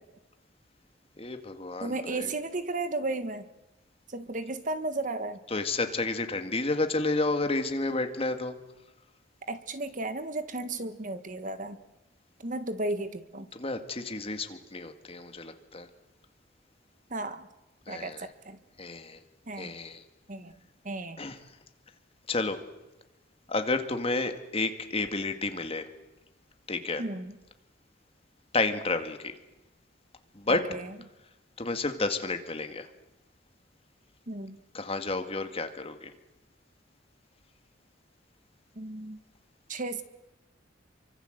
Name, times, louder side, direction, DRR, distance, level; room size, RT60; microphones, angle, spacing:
voice 1, 1.2-2.3 5.5-8.5 13.5-15.9 17.9-18.3 18.8-19.2 19.6-20.0 21.2-21.4 22.3-22.6 23.5-25.9 26.7-27.0 28.5-29.3 30.3-30.6 31.6-32.9 34.7-36.1, left 3 dB, 30° left, 7 dB, 2.1 m, -31 dB
voice 2, 1.8-3.5 4.1-5.4 9.5-11.8 12.4-13.5 17.1-17.5 17.9-18.6 19.5-19.7 20.3-20.5 20.8-21.2 27.0-27.3 30.5-30.9 34.3-34.6 38.7-39.2 39.7-40.0, right 2 dB, 45° right, 10 dB, 1.6 m, -34 dB
28.5 x 24.5 x 8.0 m, 1.0 s
head